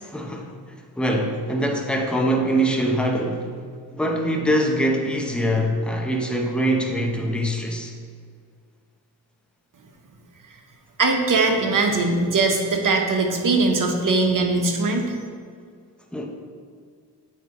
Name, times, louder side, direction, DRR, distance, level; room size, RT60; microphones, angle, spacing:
voice 1, 0.0-0.5 1.0-3.5 3.9-7.9 16.1-16.3, right 1 dB, ahead, 0 dB, 0.9 m, -23 dB
voice 2, 11.0-15.2, right 3 dB, 50° right, 3 dB, 1.1 m, -21 dB
8.2 x 4.7 x 3.1 m, 2.1 s
cardioid pair, 55°, 40 cm